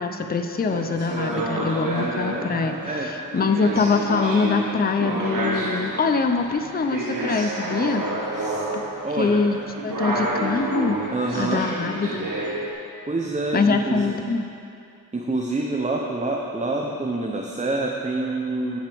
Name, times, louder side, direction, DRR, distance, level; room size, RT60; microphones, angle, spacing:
voice 1, 0.0-2.8 3.0-8.1 8.7-8.8 9.1-11.0 11.3-12.3 13.5-14.4, left 4 dB, 25° left, 7 dB, 0.5 m, -24 dB
sound 1, 0.5-12.7, right 1 dB, 65° right, 1.4 m, -29 dB
voice 2, 1.3-1.8 2.8-3.1 8.3-8.6 9.0-9.6 11.1-11.7 13.1-14.1 15.1-18.8, right 2 dB, 20° right, 0 dB, 0.7 m, -27 dB
15.5 x 5.9 x 3.5 m, 2.6 s
cardioid pair, 85°, 35 cm